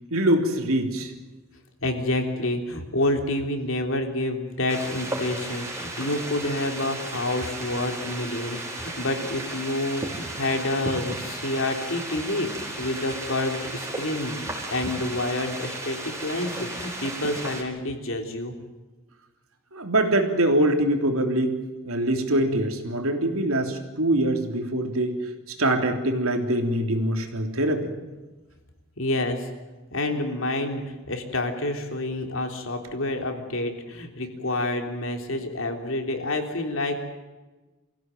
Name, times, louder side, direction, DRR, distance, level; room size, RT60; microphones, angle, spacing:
voice 1, 0.1-1.1 19.7-25.2 25.5-27.9, right 1 dB, 75° right, 5 dB, 3.4 m, -24 dB
voice 2, 1.8-18.6 29.0-29.5 29.9-37.0, left 1 dB, 65° left, 4 dB, 3.4 m, -28 dB
sound 1, 4.7-17.6, right 2 dB, 15° right, 5.0 m, -34 dB
25.0 x 16.0 x 9.2 m, 1.2 s
head